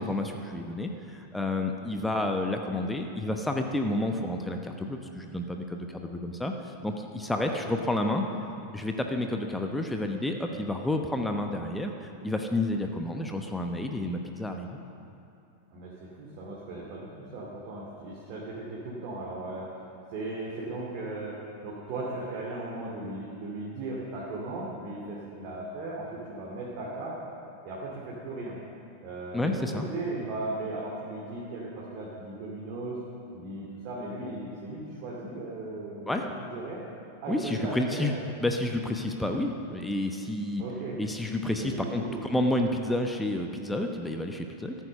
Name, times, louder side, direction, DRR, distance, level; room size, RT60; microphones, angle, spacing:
voice 1, 0.0-8.2 8.7-14.7 29.3-29.9 36.1-36.2 37.3-38.1 38.4-40.6 41.0-44.8, left 1 dB, 5° left, 4 dB, 0.9 m, -30 dB
voice 2, 15.7-19.7 20.1-27.2 27.6-28.6 29.0-33.0 33.3-36.8 37.2-38.1 40.6-41.0 41.6-42.2, right 2 dB, 45° right, -4 dB, 2.4 m, -37 dB
14.0 x 9.2 x 6.6 m, 2.7 s
figure-of-eight pair, 90°, 0 cm